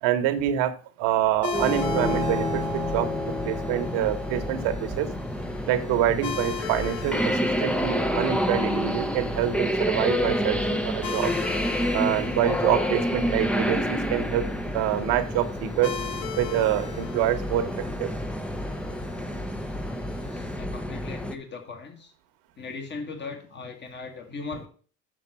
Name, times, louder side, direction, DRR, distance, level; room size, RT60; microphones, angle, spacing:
voice 1, 0.0-5.1 5.7-11.3 11.9-16.0 16.4-18.1, right 11 dB, 75° right, 9 dB, 1.4 m, -26 dB
sound 1, 1.4-20.6, left 6 dB, 55° left, 1.6 m, -40 dB
sound 2, 1.5-21.3, equal, 5° left, 0.8 m, -28 dB
voice 2, 20.2-22.1 22.6-24.7, left 4 dB, 30° left, 4 dB, 2.2 m, -38 dB
7.4 x 6.7 x 6.1 m, 0.41 s
supercardioid pair, 90°, 35 cm